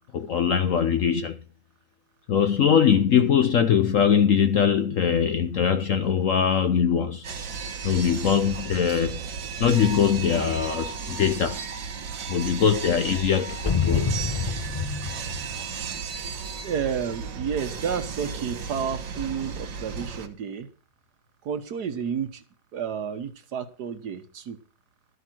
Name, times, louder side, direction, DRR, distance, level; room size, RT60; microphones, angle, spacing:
voice 1, 0.1-1.4 2.3-7.3 7.8-9.3 9.6-11.6 12.3-14.1, left 7 dB, 60° left, 0.9 m, -22 dB
sound 1, 7.2-20.3, right 5 dB, 85° right, 1.9 m, -34 dB
sound 2, 13.7-16.4, left 6 dB, 40° left, 0.5 m, -27 dB
voice 2, 16.6-20.7 21.4-22.4 22.7-24.6, right 7 dB, 65° right, 1.6 m, -31 dB
12.5 x 8.2 x 6.1 m
omnidirectional pair, 2.0 m